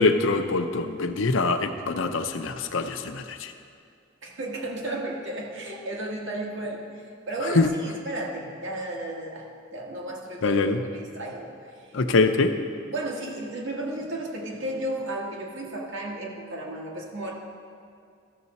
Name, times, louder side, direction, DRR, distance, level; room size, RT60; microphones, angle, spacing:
voice 1, 0.0-3.5 7.5-7.7 10.4-10.8 11.9-12.5, left 3 dB, 80° left, 7 dB, 0.6 m, -23 dB
voice 2, 4.2-10.6 10.8-12.0 12.9-17.3, right 1 dB, 75° right, -2 dB, 1.5 m, -33 dB
13.5 x 6.6 x 4.1 m, 2.3 s
head